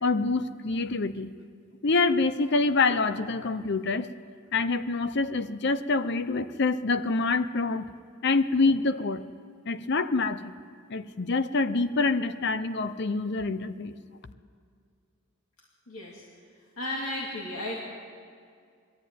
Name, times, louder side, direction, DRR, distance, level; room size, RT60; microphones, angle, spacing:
voice 1, 0.0-1.3 1.8-4.1 4.5-7.9 8.2-9.2 9.7-10.5 10.9-13.9, left 3 dB, 55° left, 12 dB, 0.7 m, -26 dB
voice 2, 15.9-16.2 16.8-17.8, left 1 dB, 90° left, -3 dB, 2.6 m, -34 dB
22.0 x 13.0 x 9.3 m, 2.2 s
head